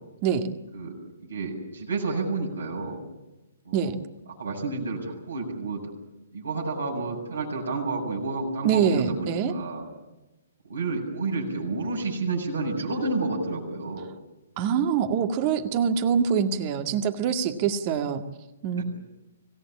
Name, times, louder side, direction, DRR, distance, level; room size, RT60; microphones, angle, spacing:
voice 1, 0.7-3.0 3.6-3.9 4.4-5.9 6.3-9.9 10.6-14.0 18.8-18.9, right 3 dB, 70° right, -1 dB, 7.5 m, -30 dB
voice 2, 8.6-9.5 14.6-18.2 18.6-18.8, right 7 dB, 35° right, 7 dB, 2.0 m, -24 dB
25.5 x 17.5 x 8.7 m, 1.0 s
figure-of-eight pair, 120°, 0 cm